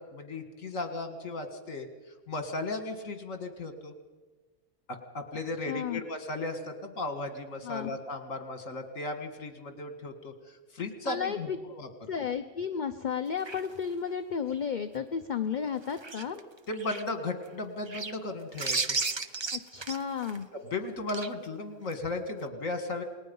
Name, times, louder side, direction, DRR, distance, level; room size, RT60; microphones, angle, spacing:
voice 1, 0.0-1.9 2.3-3.9 4.9-11.5 11.7-12.1 16.7-19.0 20.5-23.0, left 2 dB, 60° left, 6 dB, 2.4 m, -36 dB
voice 2, 5.7-6.0 7.6-7.9 11.0-11.6 12.1-16.4 19.5-20.5, left 7 dB, 45° left, 9 dB, 0.6 m, -33 dB
sound 1, 13.4-14.1 15.8-17.0 17.9-18.2 18.5-20.4 21.1-21.3 21.9-22.0, right 4 dB, 35° right, 0.4 m, -34 dB
27.5 x 20.0 x 5.5 m, 1.3 s
omnidirectional pair, 1.6 m